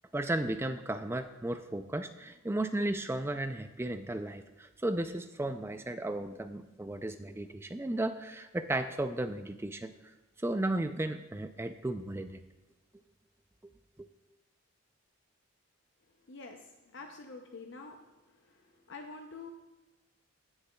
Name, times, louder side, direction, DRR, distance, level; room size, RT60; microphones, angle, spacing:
voice 1, 0.1-9.9 10.4-12.4 14.0-14.1, right 1 dB, 10° right, 9 dB, 0.3 m, -34 dB
voice 2, 16.3-18.0 18.5-19.5, left 3 dB, 55° left, 3 dB, 0.6 m, -47 dB
17.0 x 6.7 x 2.3 m, 1.1 s
head